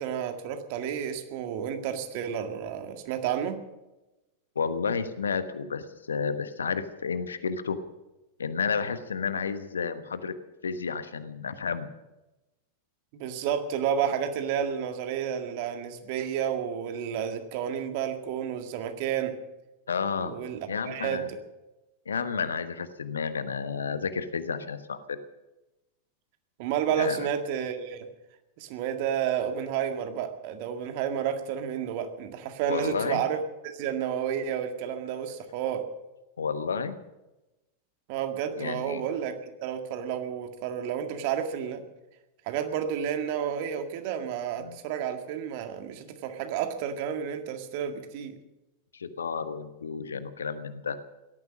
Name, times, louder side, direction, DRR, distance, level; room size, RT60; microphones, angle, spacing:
voice 1, 0.0-3.6 13.1-19.3 20.2-21.2 26.6-28.1 28.6-35.8 38.1-41.8 42.5-48.4, right 8 dB, 45° right, 7 dB, 1.9 m, -31 dB
voice 2, 4.5-7.8 8.4-10.3 10.6-11.9 19.9-20.4 20.7-21.3 22.0-25.2 27.0-27.3 32.7-33.2 36.4-37.0 38.6-39.0 44.6-44.8 48.9-51.0, left 5 dB, 70° left, 11 dB, 1.2 m, -31 dB
17.5 x 13.5 x 6.2 m, 1.0 s
figure-of-eight pair, 90°, 0 cm